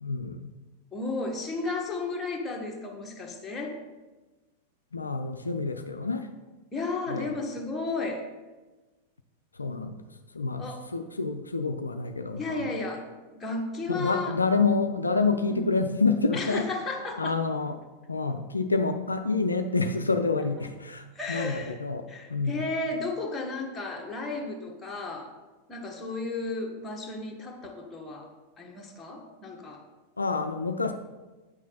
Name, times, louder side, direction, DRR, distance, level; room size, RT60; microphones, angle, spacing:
voice 1, 0.0-0.5 4.9-6.3 7.1-7.4 9.5-10.0 10.3-10.7 10.9-12.8 13.9-16.7 17.2-17.8 18.1-22.0 22.3-22.6 30.2-30.9, left 4 dB, 80° left, 7 dB, 0.4 m, -28 dB
voice 2, 0.9-3.8 6.7-8.2 10.6-10.8 12.4-13.1 13.3-14.4 15.5-15.6 16.3-17.4 21.1-21.8 22.1-25.3 25.7-28.3 28.6-29.8, left 3 dB, 15° left, 0 dB, 1.5 m, -33 dB
8.9 x 6.1 x 4.1 m, 1.2 s
figure-of-eight pair, 90°, 0 cm